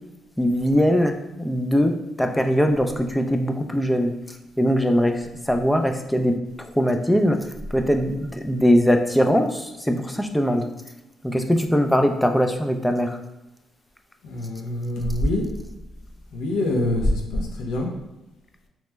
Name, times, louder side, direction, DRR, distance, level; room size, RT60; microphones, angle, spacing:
voice 1, 0.4-4.1 4.6-7.4 7.7-10.6 11.2-13.2, equal, 5° left, 5 dB, 0.3 m, -21 dB
voice 2, 14.2-15.5 16.3-17.9, left 1 dB, 85° left, 2 dB, 0.5 m, -24 dB
3.0 x 2.0 x 3.3 m, 0.97 s
cardioid pair, 90°, 0 cm